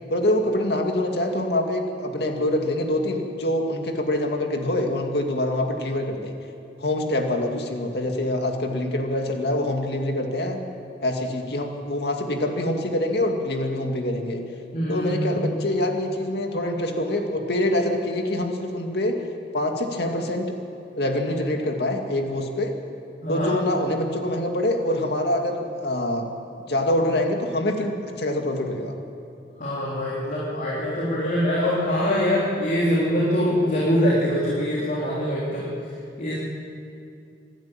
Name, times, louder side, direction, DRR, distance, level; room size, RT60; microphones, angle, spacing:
voice 1, 0.1-6.3 6.8-10.6 11.0-14.4 14.9-19.2 19.5-20.5 21.0-22.7 23.3-26.3 26.7-28.9, left 1 dB, 65° left, 3 dB, 2.4 m, -25 dB
voice 2, 14.7-15.4 23.2-23.5 29.6-35.7 36.2-36.3, equal, 50° left, -6 dB, 3.6 m, -23 dB
26.5 x 11.5 x 8.9 m, 2.5 s
head